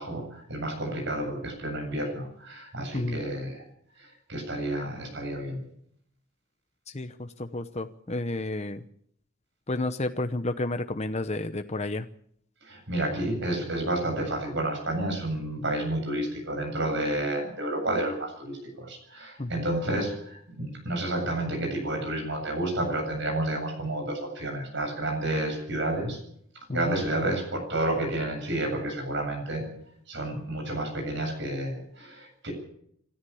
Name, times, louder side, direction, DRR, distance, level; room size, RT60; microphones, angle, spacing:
voice 1, 0.0-3.6 4.0-5.6 12.6-26.2 26.7-29.6 30.1-32.5, right 1 dB, 55° right, 2 dB, 8.0 m, -30 dB
voice 2, 7.4-8.8 9.7-12.1 19.4-19.5 26.7-27.0, left 2 dB, 30° left, 8 dB, 0.8 m, -31 dB
28.0 x 13.5 x 7.1 m, 0.67 s
head